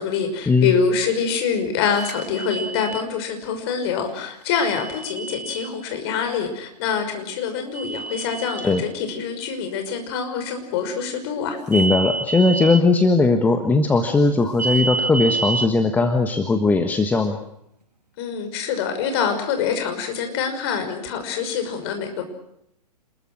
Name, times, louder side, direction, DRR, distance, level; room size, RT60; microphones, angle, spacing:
voice 1, 0.0-11.6 18.2-22.2, left 6 dB, 40° left, 6 dB, 5.9 m, -25 dB
sound 1, 1.9-3.0 4.6-5.7 7.7-8.8 11.7-12.8 14.6-15.7, right 4 dB, 75° right, 6.0 m, -28 dB
voice 2, 11.7-17.4, left 3 dB, 10° left, 6 dB, 1.5 m, -18 dB
28.0 x 21.5 x 6.3 m, 0.78 s
figure-of-eight pair, 115°, 21 cm